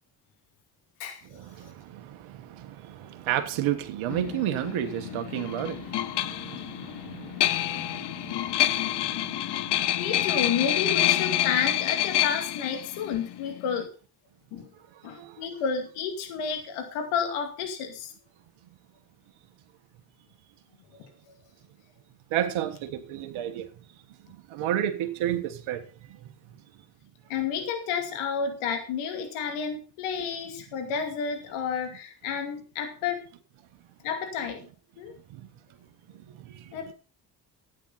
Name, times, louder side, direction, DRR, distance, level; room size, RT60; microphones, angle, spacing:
voice 1, 1.2-10.1 14.7-15.6 22.3-23.9 24.3-26.6 30.3-30.4 35.3-35.5 36.1-36.8, right 11 dB, 70° right, 1.5 m, -33 dB
sound 1, 4.1-13.8, left 12 dB, 55° left, 0.9 m, -28 dB
voice 2, 8.5-9.4 10.0-13.9 14.5-14.7 15.0-18.1 27.3-33.2 34.0-34.6 35.0-35.1 36.7-36.9, left 6 dB, 80° left, 2.5 m, -31 dB
13.0 x 9.0 x 5.7 m
hypercardioid pair, 50°, 49 cm